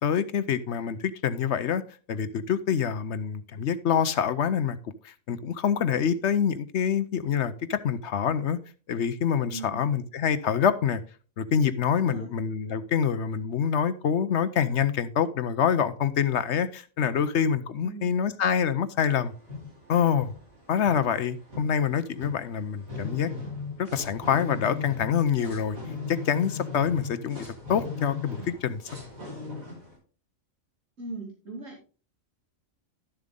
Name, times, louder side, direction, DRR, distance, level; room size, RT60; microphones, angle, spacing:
voice 1, 0.0-1.8 2.1-4.8 5.0-8.6 8.9-11.0 11.4-19.3 19.9-20.3 20.7-23.3 23.8-25.8 26.1-28.8, left 7 dB, 60° left, 13 dB, 1.0 m, -26 dB
voice 2, 9.5-9.8 12.0-12.3 17.8-18.2 31.0-31.8, right 2 dB, 65° right, -3 dB, 4.2 m, -40 dB
sound 1, 19.2-29.9, left 4 dB, 85° right, 5.5 m, -38 dB
12.5 x 7.3 x 3.7 m, 0.37 s
omnidirectional pair, 1.4 m